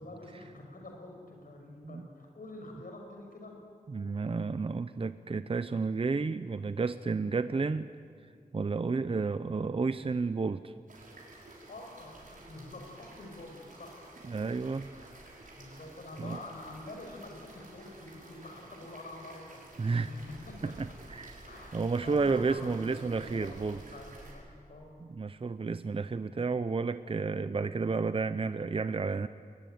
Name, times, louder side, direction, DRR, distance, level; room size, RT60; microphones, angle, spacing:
voice 1, 0.0-3.5 11.7-14.1 15.6-20.2 20.5-20.7 21.5-24.9, left 2 dB, 75° left, 2 dB, 6.1 m, -47 dB
voice 2, 3.9-7.9 8.5-10.7 14.2-14.9 16.2-16.4 19.8-20.1 20.6-21.5 21.7-23.8 25.0-29.3, right 4 dB, 40° right, 12 dB, 0.6 m, -31 dB
sound 1, 10.9-24.3, right 2 dB, 65° right, 5.8 m, -52 dB
21.5 x 20.5 x 9.3 m, 2.2 s
wide cardioid pair, 90°, 15 cm